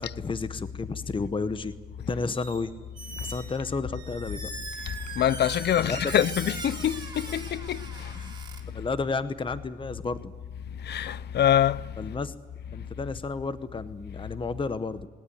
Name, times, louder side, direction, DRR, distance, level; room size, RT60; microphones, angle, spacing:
voice 1, 0.0-1.7 2.1-2.7 3.2-4.5 5.8-6.3 8.1-8.3 8.7-10.3 12.0-12.3 12.7-15.1, left 4 dB, 25° left, 1.0 m, -32 dB
Squeak, 2.3-2.7 2.9-8.6, right 3 dB, 25° right, 5.7 m, -40 dB
voice 2, 5.2-7.8 10.9-11.8, left 10 dB, 55° left, 0.7 m, -24 dB
20.0 x 18.5 x 9.9 m
cardioid pair, 90°, 20 cm